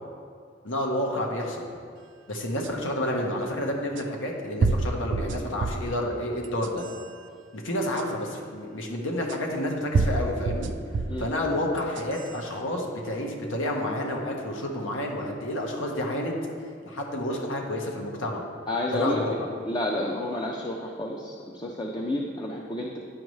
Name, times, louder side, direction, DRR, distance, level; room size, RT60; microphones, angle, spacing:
voice 1, 0.6-1.7 2.3-6.8 7.5-10.7 11.2-16.3 16.8-18.4 18.9-19.3, left 1 dB, 90° left, 0 dB, 1.2 m, -30 dB
sound 1, 2.6-2.7 4.0-4.1 4.6-5.9 6.4-7.0 8.0-8.1 9.3-9.4 9.9-11.3 11.8-12.3, right 3 dB, 65° right, 0.4 m, -27 dB
voice 2, 18.7-19.4 19.7-23.0, left 1 dB, 20° left, -1 dB, 0.5 m, -30 dB
10.5 x 5.3 x 3.2 m, 2.2 s
head